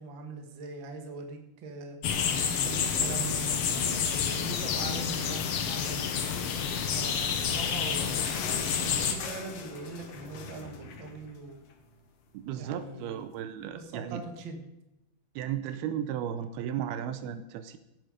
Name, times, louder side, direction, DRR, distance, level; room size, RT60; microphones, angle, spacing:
voice 1, 0.0-2.0 2.6-6.1 6.9-8.3 8.5-11.6 12.6-13.4 13.7-14.6, right 3 dB, 45° right, 4 dB, 1.7 m, -42 dB
sound 1, 2.0-9.1, left 7 dB, 85° left, 1.3 m, -29 dB
sound 2, 7.3-11.9 12.3-12.4 12.6-12.8 13.5-13.6, left 5 dB, 60° left, 1.7 m, -42 dB
voice 2, 12.3-14.2 15.4-17.8, right 9 dB, 80° right, 10 dB, 2.6 m, -35 dB
16.5 x 9.5 x 5.0 m, 0.90 s
omnidirectional pair, 4.6 m